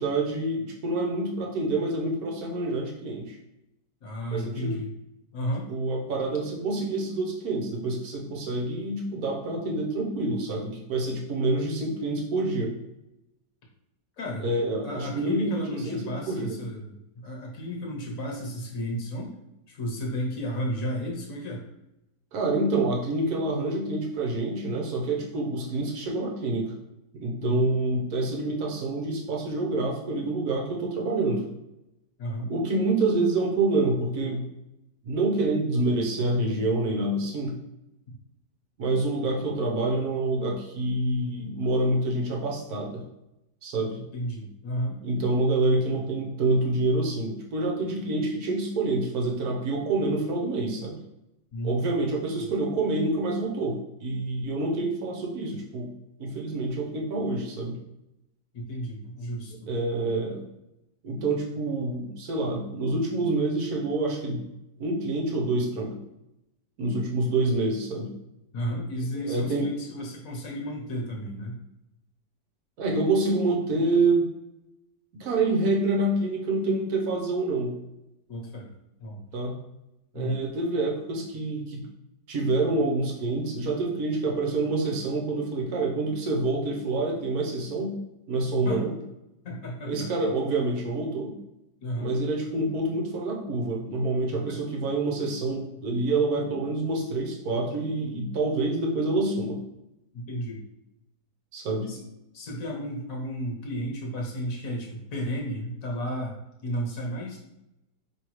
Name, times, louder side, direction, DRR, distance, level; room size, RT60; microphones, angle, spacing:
voice 1, 0.0-3.4 4.3-4.8 5.7-12.7 14.4-16.6 22.3-26.7 27.1-31.4 32.5-34.4 35.0-37.6 38.8-43.0 43.6-44.0 45.0-51.0 51.6-55.9 56.2-57.8 59.7-60.5 61.0-64.5 64.8-66.0 66.8-68.1 69.2-69.7 72.8-74.3 75.1-77.8 79.3-79.6 80.1-81.8 82.3-87.9 88.3-88.9 89.9-91.3 92.0-99.6 101.5-101.9, right 2 dB, 65° right, 0 dB, 1.3 m, -27 dB
voice 2, 4.0-4.9 5.3-5.7 14.2-14.5 14.8-19.4 19.7-21.6 27.4-27.7 32.2-32.5 44.1-45.0 51.5-51.8 52.4-52.6 58.5-59.7 68.5-71.6 78.3-78.7 79.0-79.2 80.1-80.4 88.5-88.8 89.4-90.1 91.8-92.1 94.3-94.6 100.1-100.6 101.9-102.0 102.3-107.4, equal, 55° left, 0 dB, 1.4 m, -33 dB
5.0 x 3.2 x 3.0 m, 0.90 s
omnidirectional pair, 1.8 m